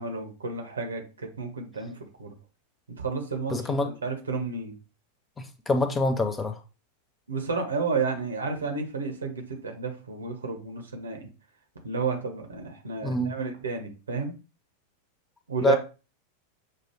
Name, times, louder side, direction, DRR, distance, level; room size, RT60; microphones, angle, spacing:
voice 1, 0.0-2.3 3.0-4.8 7.3-11.3 11.8-14.3 15.5-15.8, right 5 dB, 75° right, 1.0 m, -31 dB
voice 2, 3.5-3.9 5.4-6.6 13.0-13.3 15.6-15.8, left 2 dB, 15° left, 0.6 m, -26 dB
6.6 x 2.4 x 3.0 m
figure-of-eight pair, 90°, 0 cm